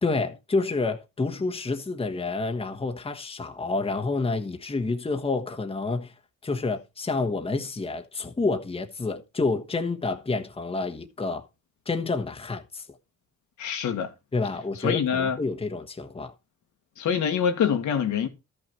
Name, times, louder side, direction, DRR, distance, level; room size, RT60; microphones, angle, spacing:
voice 1, 0.0-6.1 6.4-11.5 11.9-12.9 14.3-16.3, left 3 dB, 20° left, 1.3 m, -29 dB
voice 2, 13.6-14.1 14.8-15.4 17.0-18.3, left 7 dB, 75° left, 1.8 m, -25 dB
13.0 x 6.1 x 4.4 m
cardioid pair, 90°, 30 cm